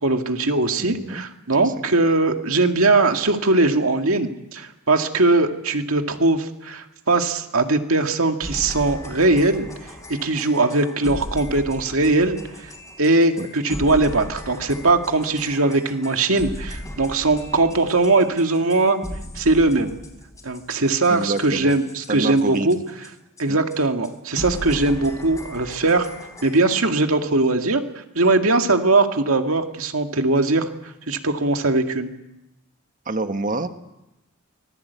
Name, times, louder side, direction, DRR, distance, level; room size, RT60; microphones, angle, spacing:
voice 1, 0.0-9.7 10.2-12.7 13.0-19.0 19.4-19.9 20.4-22.8 23.4-26.1 26.4-27.8 28.2-30.7 31.1-32.1, right 2 dB, 75° right, 5 dB, 2.1 m, -20 dB
voice 2, 0.8-1.3 1.5-1.6 13.4-13.5 21.1-21.7 22.1-22.7 23.5-23.6 33.1-33.7, right 2 dB, 40° right, 8 dB, 1.3 m, -27 dB
sound 1, 8.4-23.1 23.4-23.5 23.7-23.8 24.0-24.1 24.4-26.8, left 1 dB, 15° left, 4.1 m, -37 dB
24.5 x 20.0 x 8.3 m, 0.94 s
head